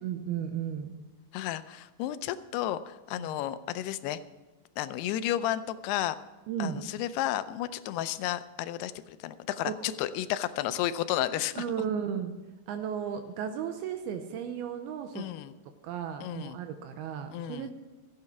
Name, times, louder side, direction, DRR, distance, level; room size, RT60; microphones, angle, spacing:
voice 1, 0.0-1.0 3.2-3.4 6.5-6.9 9.6-9.9 11.6-12.3 12.7-15.3 15.8-17.7, right 8 dB, 80° right, 7 dB, 2.6 m, -35 dB
voice 2, 1.3-4.2 4.8-6.2 6.6-11.6 15.2-15.6 16.2-16.6 17.3-17.7, left 13 dB, 85° left, 13 dB, 2.7 m, -32 dB
15.0 x 8.6 x 5.9 m, 1.2 s
omnidirectional pair, 4.6 m